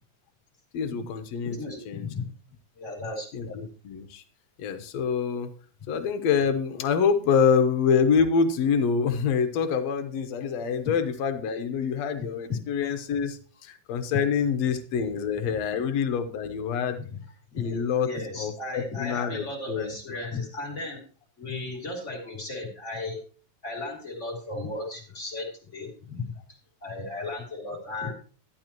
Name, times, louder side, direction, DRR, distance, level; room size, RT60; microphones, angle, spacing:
voice 1, 0.7-1.6 1.9-2.1 3.3-4.2 4.6-5.5 5.9-17.0 17.6-18.1 18.4-19.9, left 6 dB, 65° left, 7 dB, 2.1 m, -26 dB
voice 2, 1.4-2.3 2.8-3.7 17.0-17.1 17.5-21.0 21.4-23.2 23.6-28.1, left 2 dB, 25° left, 1 dB, 2.8 m, -35 dB
12.0 x 11.5 x 3.0 m, 0.39 s
omnidirectional pair, 3.5 m